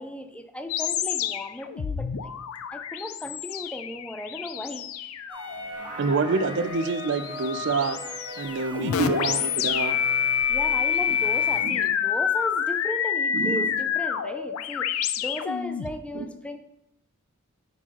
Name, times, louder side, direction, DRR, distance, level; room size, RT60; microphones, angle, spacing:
voice 1, 0.0-2.3 2.7-5.1 8.8-9.4 10.5-16.6, left 1 dB, 5° left, 7 dB, 0.4 m, -36 dB
sound 1, 0.7-16.0, left 8 dB, 75° left, 0.4 m, -28 dB
sound 2, 5.3-11.6, equal, 25° right, 1.4 m, -39 dB
voice 2, 6.0-8.0 8.4-10.0 11.6-11.8 13.3-13.7 16.1-16.3, right 4 dB, 60° right, 11 dB, 0.5 m, -27 dB
9.8 x 4.5 x 3.0 m, 0.85 s
head